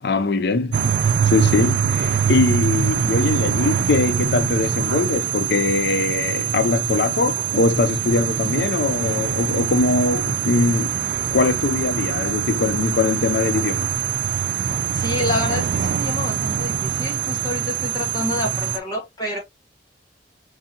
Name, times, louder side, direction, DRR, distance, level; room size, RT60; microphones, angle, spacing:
voice 1, 0.0-1.0 1.2-10.9 11.3-14.0, left 3 dB, 65° left, 0.5 m, -21 dB
sound 1, 0.7-18.8, right 8 dB, 80° right, 0.5 m, -23 dB
voice 2, 14.9-19.4, left 1 dB, 25° left, 1.3 m, -28 dB
4.7 x 2.7 x 2.7 m
head